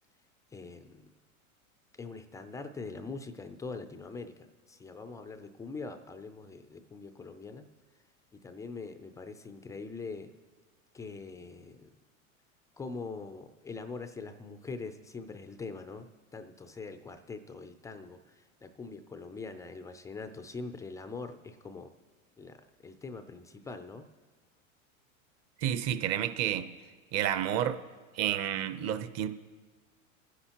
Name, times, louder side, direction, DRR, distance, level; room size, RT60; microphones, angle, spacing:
voice 1, 0.5-1.1 1.9-7.7 8.3-10.3 10.9-11.9 12.8-16.1 16.3-21.9 22.4-24.0, left 4 dB, 10° left, 8 dB, 0.3 m, -43 dB
voice 2, 25.6-26.7 27.1-27.8 28.1-29.3, right 10 dB, 40° right, 11 dB, 0.8 m, -30 dB
24.0 x 9.9 x 2.9 m, 1.4 s
hypercardioid pair, 115°, 41 cm